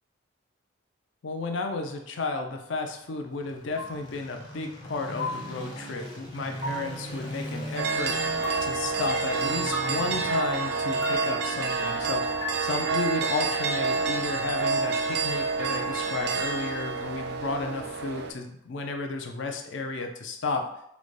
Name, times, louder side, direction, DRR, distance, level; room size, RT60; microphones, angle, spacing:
voice 1, 1.2-8.2 8.6-20.7, left 3 dB, 60° left, 4 dB, 0.4 m, -33 dB
sound 1, 3.3-17.4, equal, 20° left, 0.6 m, -42 dB
sound 2, 3.8-4.0 5.2-5.5 6.6-6.9 8.4-8.7 9.7-10.0 11.0-11.3 12.4-12.7, left 2 dB, 85° left, 1.0 m, -34 dB
sound 3, 7.8-18.3, right 4 dB, 50° right, 0.3 m, -28 dB
3.8 x 2.1 x 3.1 m, 0.77 s
head